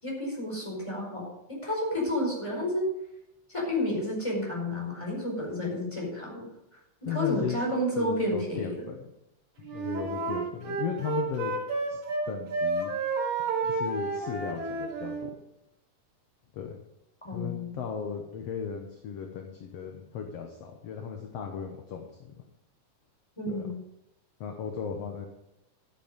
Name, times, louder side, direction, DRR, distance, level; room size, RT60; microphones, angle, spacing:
voice 1, 0.0-2.9 3.5-6.5 7.0-8.8 17.2-17.7 23.4-23.8, left 1 dB, 10° left, -2 dB, 4.7 m, -31 dB
voice 2, 7.0-7.6 8.0-9.1 9.6-11.5 11.9-12.0 12.3-12.9 13.6-15.3 16.5-16.8 17.3-22.4 23.5-23.6 24.4-25.3, left 7 dB, 60° left, 3 dB, 2.0 m, -36 dB
Wind instrument woodwind instrument, 9.6-12.2 12.5-15.3, right 3 dB, 70° right, 4.0 m, -31 dB
13.5 x 8.3 x 5.3 m, 0.85 s
omnidirectional pair, 3.5 m